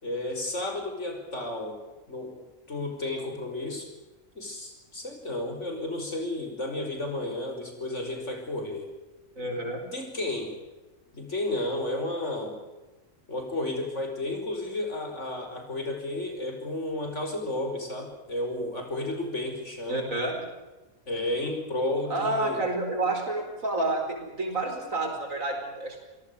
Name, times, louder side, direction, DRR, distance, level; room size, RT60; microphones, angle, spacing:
voice 1, 0.0-1.8 2.1-2.4 2.7-3.9 4.4-8.9 9.4-10.6 11.1-12.6 13.3-20.1 21.1-22.6, left 2 dB, 60° left, 4 dB, 5.7 m, -32 dB
voice 2, 9.4-9.8 19.9-20.4 22.1-26.0, right 2 dB, 80° right, 3 dB, 5.4 m, -29 dB
27.5 x 18.0 x 7.0 m, 1.1 s
omnidirectional pair, 1.4 m